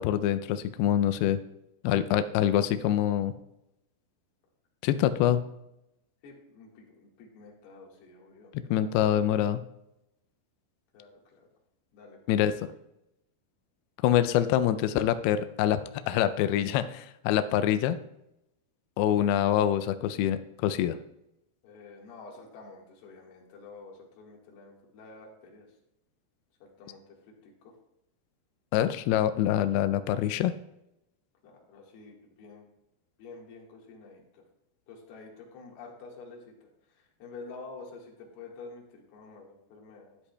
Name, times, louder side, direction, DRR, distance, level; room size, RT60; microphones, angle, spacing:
voice 1, 0.0-1.4 1.8-3.3 4.8-5.4 8.5-9.6 12.3-12.7 14.0-18.0 19.0-21.0 28.7-30.5, left 11 dB, 90° left, 10 dB, 2.3 m, -25 dB
voice 2, 6.2-9.0 10.9-11.5 11.9-12.6 21.6-25.8 26.6-27.8 31.4-32.8 33.2-34.4 34.9-40.2, left 3 dB, 70° left, -1 dB, 3.5 m, -49 dB
12.5 x 9.9 x 2.2 m, 0.85 s
omnidirectional pair, 5.1 m